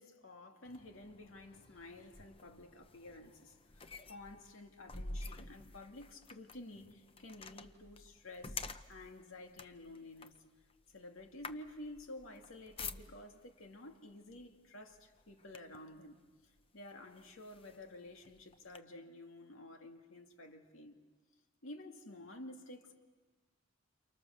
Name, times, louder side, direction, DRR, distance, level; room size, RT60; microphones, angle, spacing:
voice 1, 0.0-10.4 10.9-16.2 16.4-21.0 21.6-23.0, left 1 dB, 80° left, 2.2 m, -52 dB
sound 1, 0.7-13.5 14.3-14.5 14.9-16.0 16.6-16.7 17.1-18.8, left 3 dB, 25° left, 0.7 m, -49 dB
29.5 x 29.0 x 6.8 m
head